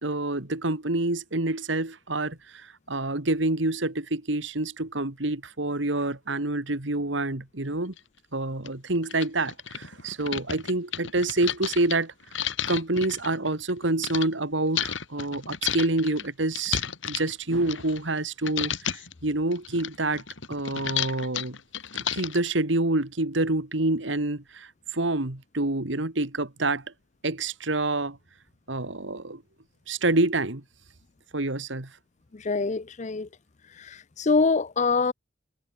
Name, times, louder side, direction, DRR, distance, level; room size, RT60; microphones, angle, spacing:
voice 1, 0.0-7.9 8.3-12.1 12.7-20.2 20.5-21.6 22.1-26.8 27.2-28.2 28.7-29.4 29.9-30.6 31.3-31.9, right 2 dB, 70° right, 2.3 m, -27 dB
sound 1, 8.0-8.1 8.7-8.8 9.0-14.3 14.7-18.2 18.4-19.1 19.5-22.5, left 9 dB, 75° left, 3.2 m, -32 dB
voice 2, 32.4-33.3 33.9-35.1, left 4 dB, 40° left, 0.6 m, -24 dB
head